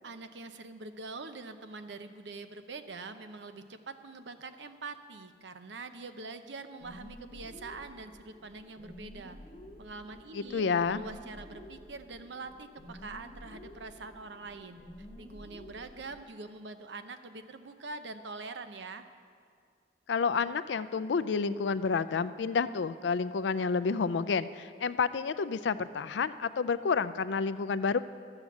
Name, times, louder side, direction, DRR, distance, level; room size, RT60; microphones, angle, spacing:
voice 1, 0.0-9.4 9.8-14.8 15.2-19.0, right 3 dB, 80° right, 9 dB, 0.7 m, -44 dB
sound 1, 6.8-16.2, equal, 45° left, 1.0 m, -50 dB
voice 2, 10.3-11.0 20.1-28.0, left 5 dB, 80° left, 14 dB, 0.4 m, -29 dB
12.5 x 8.0 x 7.2 m, 2.2 s
head